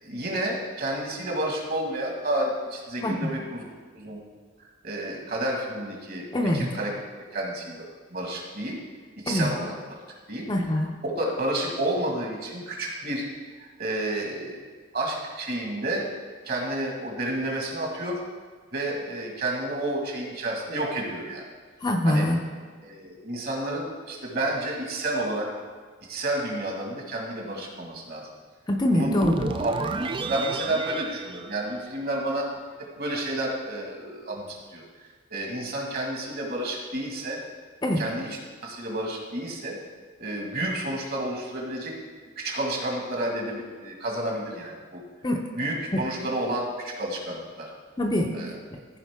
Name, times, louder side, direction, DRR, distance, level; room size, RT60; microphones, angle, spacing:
voice 1, 0.0-3.6 3.9-4.2 4.8-6.9 7.3-8.8 9.2-9.7 10.3-10.5 11.0-13.2 13.6-16.1 16.5-18.2 18.7-21.4 22.1-22.3 22.8-25.5 26.1-28.3 28.9-29.2 29.6-29.7 30.0-32.5 33.0-34.8 35.3-37.4 38.0-39.8 40.2-41.9 42.4-45.0 45.5-47.7 48.3-48.5, right 1 dB, 50° right, 0 dB, 1.8 m, -30 dB
voice 2, 3.0-3.3 6.3-6.7 9.3-9.5 10.5-10.9 21.8-22.4 28.7-29.5 37.8-38.0 45.2-45.4 45.9-46.0 48.0-48.3 48.7-48.8, left 1 dB, 20° left, 1 dB, 0.6 m, -24 dB
sound 1, 29.0-32.3, right 3 dB, 25° right, 0.3 m, -32 dB
14.5 x 5.1 x 3.6 m, 1.5 s
head